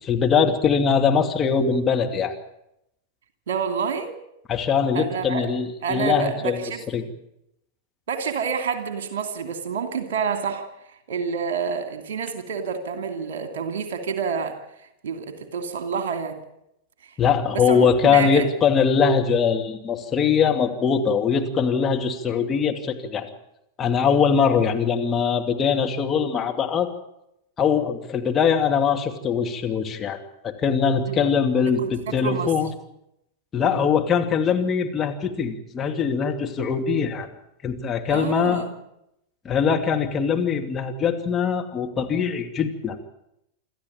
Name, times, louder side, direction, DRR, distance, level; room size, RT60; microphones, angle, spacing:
voice 1, 0.0-2.3 4.5-6.6 6.9-7.0 17.2-23.3 23.8-26.9 27.6-32.7 33.5-37.3 37.6-38.7 39.4-43.0, left 6 dB, 20° left, 2 dB, 2.5 m, -22 dB
voice 2, 3.5-4.1 4.9-5.4 5.8-6.8 8.1-10.7 11.1-16.4 17.5-18.5 31.1-31.4 31.8-32.5 33.6-33.8 38.1-38.8, right 6 dB, 60° right, 7 dB, 2.8 m, -28 dB
27.5 x 13.5 x 8.9 m, 0.81 s
figure-of-eight pair, 90°, 0 cm